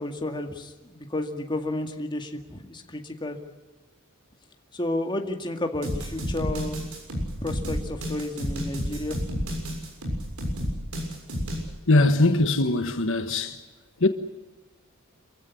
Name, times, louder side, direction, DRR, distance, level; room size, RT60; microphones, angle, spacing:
voice 1, 0.0-3.4 4.7-6.8 7.4-9.2, left 1 dB, 20° left, 2.1 m, -31 dB
sound 1, 5.8-11.7, equal, 90° right, 6.7 m, -31 dB
voice 2, 11.9-13.6 14.0-14.1, left 2 dB, 65° left, 1.4 m, -21 dB
27.0 x 15.5 x 9.8 m
head